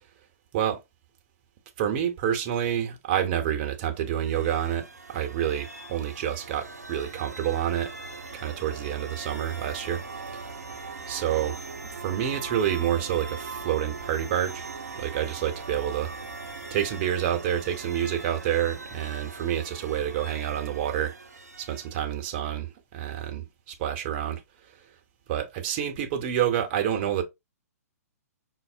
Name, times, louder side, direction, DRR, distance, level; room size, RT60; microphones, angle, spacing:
voice 1, 1.8-7.9 8.3-10.5 11.1-14.7 14.9-16.1 16.7-21.2 21.6-24.4 25.3-27.2, right 10 dB, 40° right, 0.8 m, -28 dB
sound 1, 4.0-22.2, right 3 dB, 90° right, 0.9 m, -40 dB
5.4 x 2.0 x 2.4 m
figure-of-eight pair, 125°, 9 cm